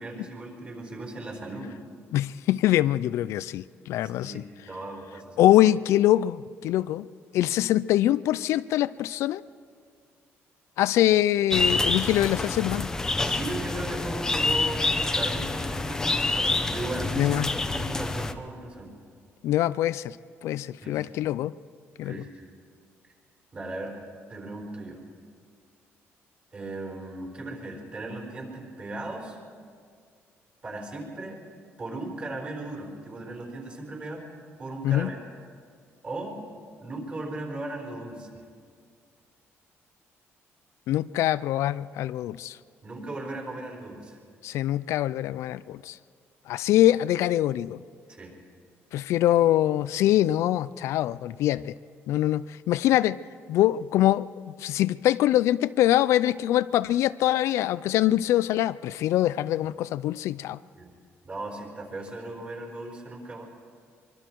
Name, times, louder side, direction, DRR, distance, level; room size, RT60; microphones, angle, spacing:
voice 1, 0.0-1.8 4.2-5.4 13.2-17.4 17.7-19.0 20.8-21.0 22.0-22.5 23.5-24.0 24.3-25.0 26.5-29.4 30.6-31.4 31.8-34.3 34.6-35.2 36.0-36.4 36.8-38.4 42.8-44.2 48.1-48.3 60.8-60.9 61.2-63.4, right 2 dB, 30° right, 1 dB, 4.4 m, -37 dB
voice 2, 2.1-4.4 5.4-7.1 7.3-9.4 10.8-12.9 17.2-17.5 19.4-20.2 20.4-21.5 22.0-22.2 34.8-35.1 40.9-42.6 44.4-46.0 46.5-47.8 48.9-51.7 52.1-53.2 53.5-54.3 54.6-60.6, left 13 dB, 75° left, 16 dB, 0.4 m, -24 dB
sound 1, 11.5-18.3, left 2 dB, 10° left, 0.8 m, -27 dB
24.0 x 23.5 x 4.6 m, 2.1 s
cardioid pair, 155°, 5 cm